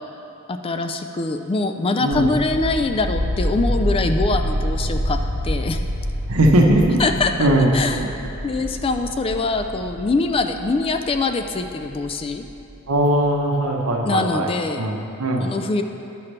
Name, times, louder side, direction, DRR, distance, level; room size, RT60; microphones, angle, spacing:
voice 1, 0.5-5.2 5.4-5.8 7.0-7.3 7.7-8.0 8.4-12.4 14.1-14.9 15.4-15.8, left 3 dB, 25° left, 6 dB, 0.3 m, -23 dB
sound 1, 2.1-12.8, equal, 40° right, 1.1 m, -27 dB
voice 2, 6.3-7.0 7.4-8.1 12.9-14.5 14.8-15.5, right 1 dB, 80° right, 1 dB, 0.9 m, -19 dB
11.0 x 5.7 x 3.3 m, 2.8 s
head